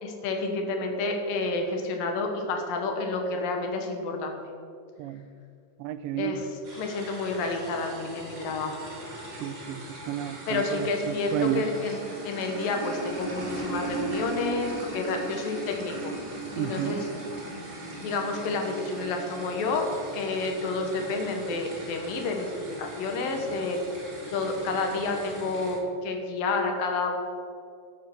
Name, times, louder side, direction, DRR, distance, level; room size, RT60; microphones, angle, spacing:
voice 1, 0.0-4.4 6.2-6.5 6.8-8.8 10.5-16.2 16.6-17.1 18.0-23.8 24.3-27.2, left 3 dB, 80° left, 4 dB, 3.1 m, -30 dB
voice 2, 5.8-6.4 9.4-11.7 16.6-17.0, right 11 dB, 85° right, 12 dB, 2.3 m, -31 dB
sound 1, 6.6-25.7, right 2 dB, 35° right, 3.4 m, -39 dB
13.5 x 7.5 x 6.2 m, 2.4 s
omnidirectional pair, 4.0 m